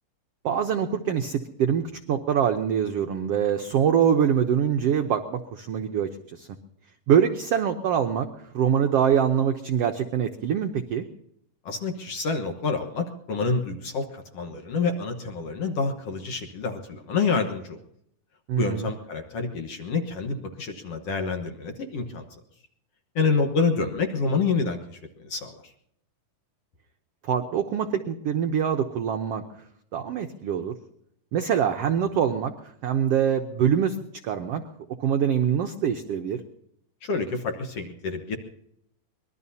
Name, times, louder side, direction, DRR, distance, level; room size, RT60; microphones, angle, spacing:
voice 1, 0.4-6.5 7.1-8.3 8.5-11.1 18.5-18.9 27.2-29.4 29.9-30.7 31.3-34.0 34.2-34.6 35.0-36.4, right 8 dB, 85° right, 5 dB, 1.3 m, -24 dB
voice 2, 11.7-17.8 18.6-22.3 23.2-25.7 37.0-38.4, left 4 dB, 55° left, 5 dB, 1.9 m, -28 dB
25.0 x 20.5 x 2.8 m, 0.73 s
omnidirectional pair, 4.0 m